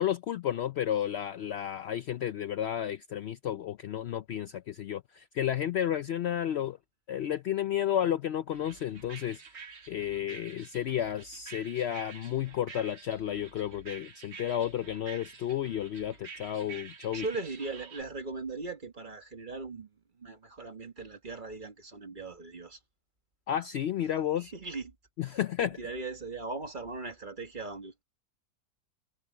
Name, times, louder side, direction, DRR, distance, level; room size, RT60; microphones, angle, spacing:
voice 1, 0.0-6.8 7.1-9.4 9.9-17.2 23.5-24.5 25.2-25.8, left 10 dB, 85° left, 0.5 m, -32 dB
sound 1, 8.5-18.0, right 5 dB, 65° right, 2.1 m, -49 dB
voice 2, 17.1-22.8 24.3-25.0 25.2-28.0, right 3 dB, 30° right, 1.8 m, -39 dB
omnidirectional pair, 1.7 m